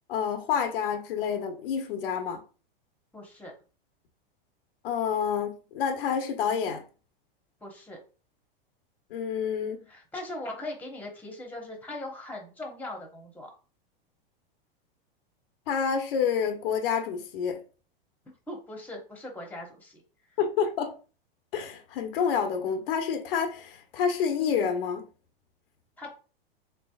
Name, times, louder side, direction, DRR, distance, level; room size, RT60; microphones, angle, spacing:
voice 1, 0.1-2.4 4.8-6.8 9.1-9.8 15.7-17.6 20.4-20.9 21.5-25.0, left 7 dB, 70° left, 0.8 m, -28 dB
voice 2, 3.1-3.5 7.6-8.0 9.9-13.5 18.5-20.0 26.0-26.1, left 1 dB, 5° left, 1.1 m, -40 dB
3.6 x 3.4 x 2.3 m
hypercardioid pair, 115°, 30 cm